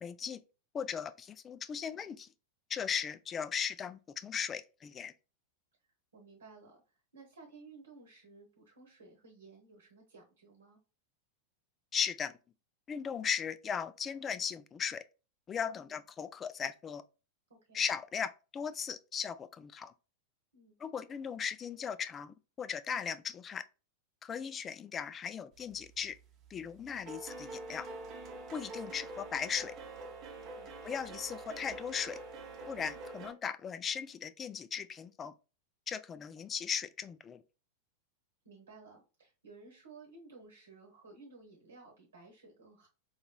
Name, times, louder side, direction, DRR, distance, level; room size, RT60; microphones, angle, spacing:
voice 1, 0.0-0.4 0.7-2.3 2.7-5.1 11.9-12.3 12.9-15.0 15.5-17.0 17.7-19.9 20.8-23.6 24.2-26.2 26.5-27.9 28.5-29.7 30.8-32.2 32.7-35.3 35.9-37.4, left 7 dB, 25° left, 0.3 m, -37 dB
voice 2, 6.1-10.8 15.8-16.0 17.5-17.8 20.5-20.8 30.5-30.7 38.4-42.9, right 3 dB, 70° right, 1.1 m, -56 dB
sound 1, 25.7-26.1 26.4-33.3, right 2 dB, 35° right, 0.8 m, -46 dB
4.7 x 2.8 x 2.2 m
figure-of-eight pair, 90°, 0 cm